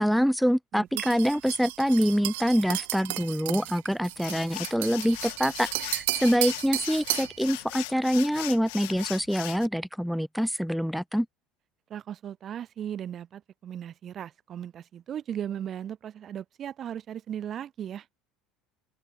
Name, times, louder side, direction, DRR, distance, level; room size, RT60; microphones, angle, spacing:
voice 1, 0.0-11.3, equal, ahead, 1.1 m, -25 dB
voice 2, 0.7-1.2 11.9-18.1, right 9 dB, 45° right, 4.1 m, -37 dB
sound 1, 1.0-7.4, right 23 dB, 70° right, 0.6 m, -34 dB
sound 2, 4.1-9.7, left 29 dB, 65° left, 1.6 m, -39 dB
open air
hypercardioid pair, 70°, 0 cm